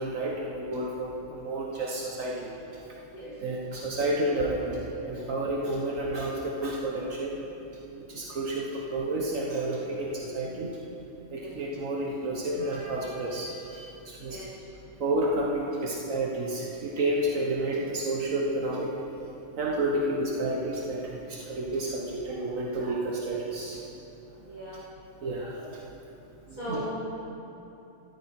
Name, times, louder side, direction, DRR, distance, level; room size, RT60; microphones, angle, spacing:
voice 1, 0.0-2.8 3.4-7.4 8.0-10.8 11.3-14.4 15.0-18.9 19.6-23.8 25.2-25.8 26.5-26.9, right 1 dB, 80° right, -3 dB, 1.7 m, -30 dB
voice 2, 26.6-26.9, equal, 30° left, -12 dB, 2.9 m, -37 dB
14.5 x 13.0 x 4.4 m, 2.9 s
omnidirectional pair, 1.4 m